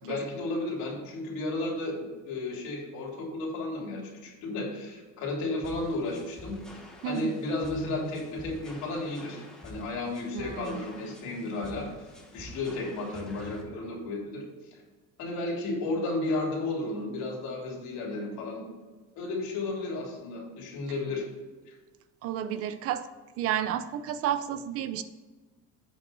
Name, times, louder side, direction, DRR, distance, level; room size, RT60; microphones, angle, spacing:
voice 1, 0.0-6.6 7.0-12.1 12.3-14.4 14.7-14.8 15.2-18.6 19.2-21.2, left 2 dB, 70° left, -1 dB, 3.0 m, -33 dB
sound 1, 5.6-13.6, left 1 dB, ahead, 1.0 m, -48 dB
voice 2, 10.3-10.8 22.2-23.0 23.4-25.0, right 10 dB, 50° right, 12 dB, 0.5 m, -31 dB
8.2 x 5.4 x 5.4 m, 1.3 s
cardioid pair, 170°, 30 cm